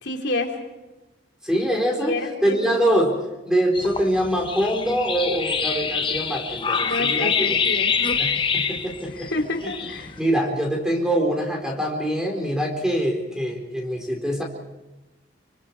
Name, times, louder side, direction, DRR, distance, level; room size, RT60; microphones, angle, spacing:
voice 1, 0.0-0.5 2.1-2.7 6.8-7.9 9.1-10.2, left 2 dB, 60° left, 3 dB, 3.6 m, -29 dB
voice 2, 1.4-2.1 2.4-3.1 3.4-7.6 8.2-9.3 9.6-9.7 10.2-14.4, equal, 5° right, 1 dB, 4.4 m, -24 dB
sound 1, 3.7-10.2, left 6 dB, 25° left, 1.1 m, -25 dB
28.0 x 24.5 x 4.8 m, 1.0 s
head